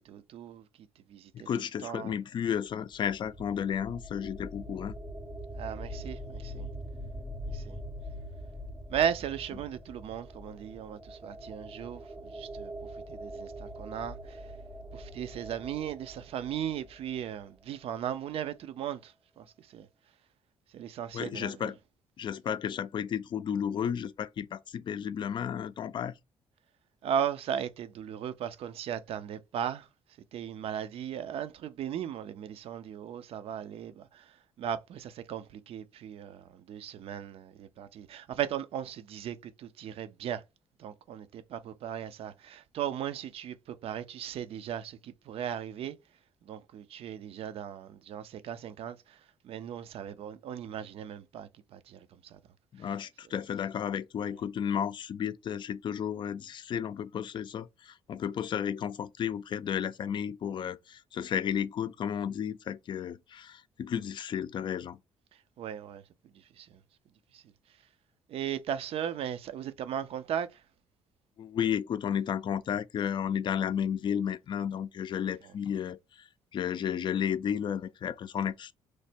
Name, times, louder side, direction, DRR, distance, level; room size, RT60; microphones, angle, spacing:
voice 1, 0.0-2.2 5.5-6.7 7.4-7.8 8.9-14.5 14.9-19.9 20.7-21.7 27.0-29.9 30.3-40.4 40.8-46.0 46.4-52.4 52.8-52.9 53.2-53.3 65.3-66.8 67.3-67.5 68.3-70.6 75.4-75.5, right 9 dB, 65° right, 0.5 m, -37 dB
voice 2, 1.3-4.9 21.1-21.7 22.2-26.1 52.7-65.0 71.4-76.0 76.5-78.7, left 8 dB, 45° left, 0.4 m, -33 dB
sound 1, 2.7-17.5, equal, 15° right, 0.6 m, -43 dB
3.2 x 2.1 x 4.2 m
cardioid pair, 95°, 11 cm